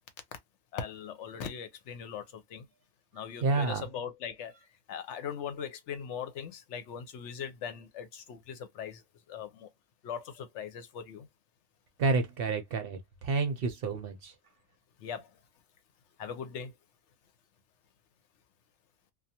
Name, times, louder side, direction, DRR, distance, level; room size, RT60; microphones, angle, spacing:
voice 1, 0.7-2.6 3.1-4.6 4.9-9.7 10.0-11.3 15.0-15.4 16.2-16.8, left 7 dB, 80° left, 0.9 m, -40 dB
voice 2, 3.4-3.8 12.0-14.3, right 3 dB, 60° right, 0.7 m, -29 dB
2.4 x 2.3 x 2.7 m
omnidirectional pair, 1.2 m